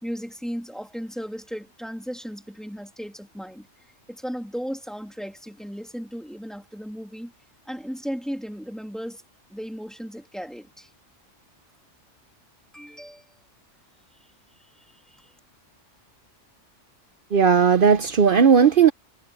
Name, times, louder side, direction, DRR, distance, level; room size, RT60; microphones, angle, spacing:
voice 1, 0.0-3.7 4.1-7.3 7.7-9.2 9.5-10.9 12.7-13.2 14.8-15.3, equal, ahead, 2.8 m, -35 dB
voice 2, 17.3-18.9, right 6 dB, 55° right, 0.8 m, -16 dB
omnidirectional pair, 1.2 m